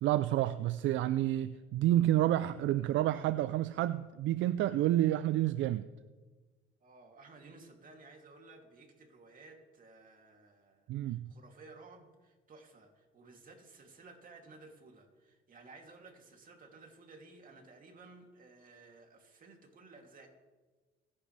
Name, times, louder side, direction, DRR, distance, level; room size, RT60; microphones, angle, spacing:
voice 1, 0.0-5.8 10.9-11.3, right 13 dB, 70° right, 13 dB, 0.5 m, -29 dB
voice 2, 6.8-20.3, right 3 dB, 40° right, 2 dB, 2.9 m, -56 dB
25.0 x 11.0 x 3.4 m, 1.3 s
cardioid pair, 90°, 20 cm